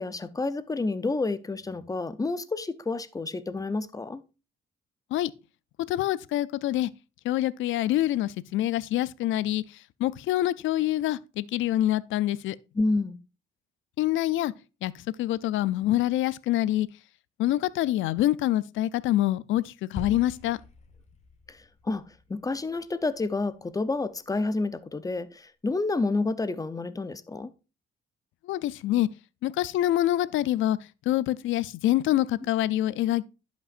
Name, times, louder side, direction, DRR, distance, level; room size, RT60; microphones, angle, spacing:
voice 1, 0.0-4.2 12.7-13.2 21.5-22.0 22.3-27.5, left 3 dB, 15° left, 0.6 m, -29 dB
voice 2, 5.9-6.9 7.2-9.6 10.0-12.6 14.0-14.5 14.8-14.9 15.2-16.9 17.4-20.6 28.4-29.1 29.4-30.8 31.1-33.3, left 14 dB, 80° left, 0.4 m, -26 dB
sound 1, 20.0-24.3, left 3 dB, 35° left, 1.3 m, -45 dB
11.5 x 5.2 x 2.5 m
cardioid pair, 90°, 20 cm